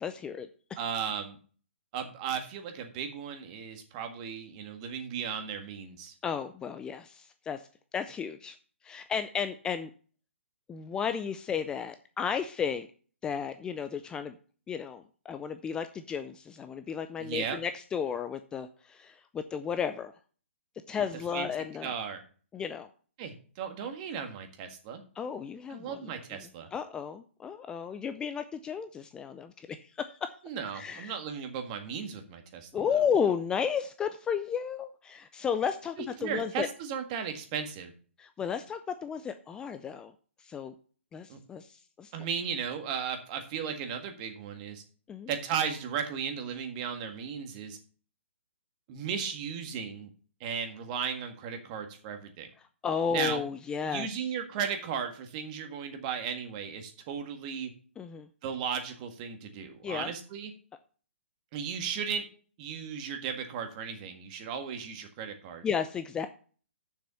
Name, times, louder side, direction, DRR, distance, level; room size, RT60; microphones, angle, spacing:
voice 1, 0.0-0.8 6.2-7.6 7.9-8.6 8.8-9.9 10.7-12.9 13.2-14.3 14.7-20.1 20.9-21.9 22.5-22.9 25.2-26.1 26.7-30.4 30.7-31.2 32.7-36.7 38.2-40.1 40.4-40.7 41.1-42.1 45.1-45.3 52.8-54.1 58.0-58.3 59.8-60.1 65.6-66.3, left 7 dB, 10° left, 9 dB, 0.4 m, -33 dB
voice 2, 0.8-1.4 1.9-6.1 17.2-17.6 21.0-21.1 21.3-21.5 21.8-22.2 23.2-25.0 25.7-26.7 30.4-32.8 36.0-37.9 41.3-41.4 42.1-44.8 45.3-47.8 48.9-50.1 50.4-52.5 53.1-53.4 53.8-57.7 58.4-60.5 61.5-62.2 62.6-65.6, right 7 dB, 35° right, 6 dB, 1.7 m, -35 dB
7.1 x 6.0 x 7.0 m, 0.42 s
hypercardioid pair, 140°, 7 cm